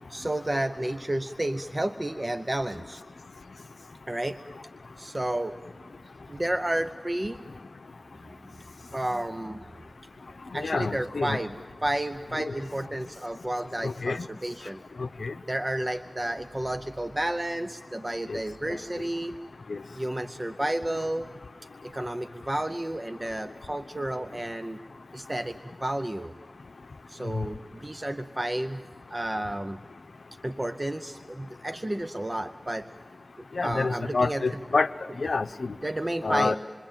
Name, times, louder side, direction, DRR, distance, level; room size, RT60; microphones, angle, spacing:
voice 1, 0.1-3.0 4.1-4.4 5.0-5.6 6.3-7.5 8.4-8.5 8.9-9.7 10.5-11.6 11.8-14.8 15.5-19.4 19.9-21.3 21.8-24.8 25.1-26.3 27.1-28.8 29.1-29.8 30.4-32.9 33.6-34.4 35.8-36.6, right 1 dB, 30° right, 9 dB, 0.7 m, -31 dB
voice 2, 10.5-11.4 13.8-14.3 15.0-15.3 18.3-18.4 18.7-18.8 19.7-19.8 27.3-27.4 33.6-34.9 35.2-35.7 36.2-36.6, left 3 dB, 80° left, 12 dB, 0.7 m, -27 dB
27.5 x 23.5 x 8.9 m, 2.1 s
wide cardioid pair, 60°, 0 cm